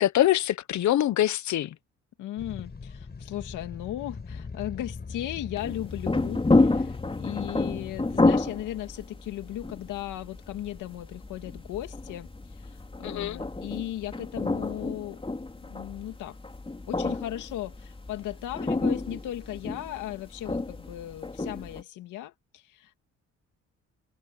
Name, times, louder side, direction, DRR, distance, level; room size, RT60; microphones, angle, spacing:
voice 1, 0.0-1.7 13.0-13.4, left 13 dB, 70° left, 1.1 m, -24 dB
voice 2, 2.2-15.2 15.7-16.4 16.9-23.0, left 13 dB, 90° left, 2.2 m, -37 dB
sound 1, 2.4-8.3, left 4 dB, 35° left, 7.6 m, -40 dB
sound 2, 5.6-21.8, left 2 dB, 20° left, 3.8 m, -29 dB
cardioid pair, 90°, 30 cm